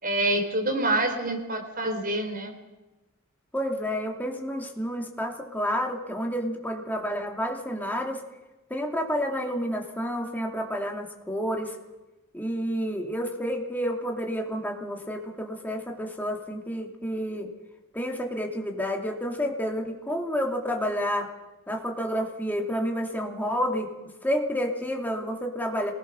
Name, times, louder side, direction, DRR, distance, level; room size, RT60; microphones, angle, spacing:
voice 1, 0.0-2.5, right 1 dB, 45° right, 4 dB, 4.1 m, -26 dB
voice 2, 3.5-8.2 8.7-11.8 12.3-17.5 17.9-21.3 21.7-23.9 24.2-25.9, equal, 10° left, 1 dB, 2.7 m, -30 dB
26.0 x 19.5 x 6.4 m, 1.1 s
head